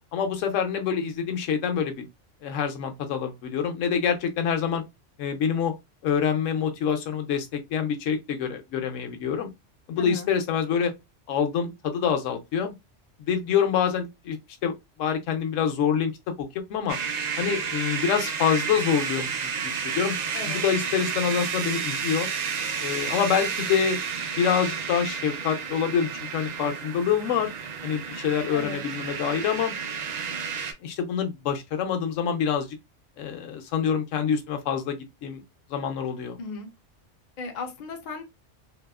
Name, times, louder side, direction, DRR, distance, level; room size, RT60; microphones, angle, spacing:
voice 1, 0.1-2.1 2.4-4.8 5.2-5.7 6.0-9.5 9.9-10.9 11.3-12.7 13.2-14.4 14.6-14.7 15.0-16.1 16.4-17.0 17.4-20.1 20.4-22.3 22.8-24.0 24.4-27.5 27.8-29.7 30.8-32.8 33.2-35.4 35.7-36.4, left 7 dB, 90° left, 1.0 m, -26 dB
voice 2, 10.0-10.3 20.3-20.6 28.5-28.8 36.4-36.7 37.4-38.2, left 4 dB, 50° left, 0.6 m, -35 dB
sound 1, 16.9-30.7, right 6 dB, 85° right, 0.3 m, -31 dB
2.8 x 2.3 x 2.3 m
omnidirectional pair, 1.3 m